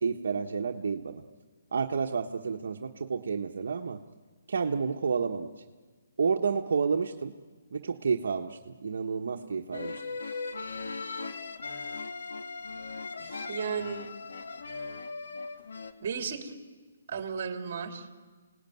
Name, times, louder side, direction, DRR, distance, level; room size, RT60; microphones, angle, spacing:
voice 1, 0.0-1.2 1.7-4.0 4.5-5.5 6.2-7.3 7.7-10.0, right 5 dB, 65° right, 2 dB, 1.3 m, -30 dB
sound 1, 9.7-15.9, left 4 dB, 80° left, 2.3 m, -38 dB
voice 2, 13.2-14.1 16.0-16.5 17.1-18.1, right 6 dB, 40° right, 5 dB, 3.2 m, -35 dB
29.0 x 18.5 x 9.4 m, 1.4 s
hypercardioid pair, 165°, 0 cm